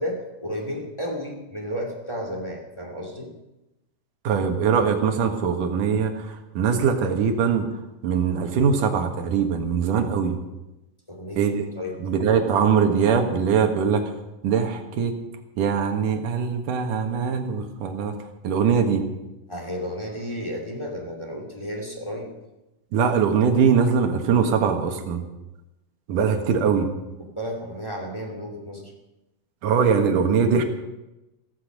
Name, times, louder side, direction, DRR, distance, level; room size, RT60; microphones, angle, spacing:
voice 1, 0.0-3.3 11.1-11.4 11.8-12.0 19.5-22.3 27.2-28.9, equal, 10° left, 1 dB, 2.2 m, -32 dB
voice 2, 4.2-7.7 8.0-10.4 11.4-11.7 12.0-14.1 14.4-15.1 15.6-18.1 18.4-19.0 22.9-25.2 26.1-26.9 29.6-30.6, right 6 dB, 75° right, 5 dB, 3.0 m, -22 dB
16.0 x 15.0 x 5.3 m, 0.98 s
omnidirectional pair, 3.8 m